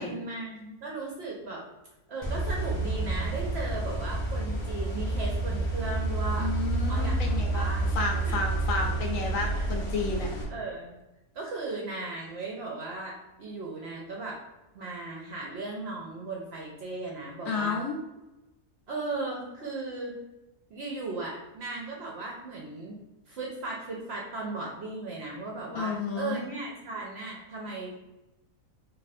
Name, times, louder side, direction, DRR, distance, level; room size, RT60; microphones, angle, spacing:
voice 1, 0.0-1.6 2.1-6.5 6.9-7.9 8.2-8.4 10.5-11.0 11.3-14.4 14.7-17.8 18.9-20.1 20.7-23.0 23.3-28.0, right 3 dB, 60° right, -2 dB, 0.7 m, -36 dB
sound 1, 2.2-10.4, right 2 dB, 25° left, 0.7 m, -29 dB
voice 2, 6.4-7.7 7.9-10.3 17.5-18.0 25.7-26.4, left 4 dB, 70° left, 1 dB, 1.0 m, -31 dB
2.6 x 2.5 x 4.1 m, 0.99 s
omnidirectional pair, 1.6 m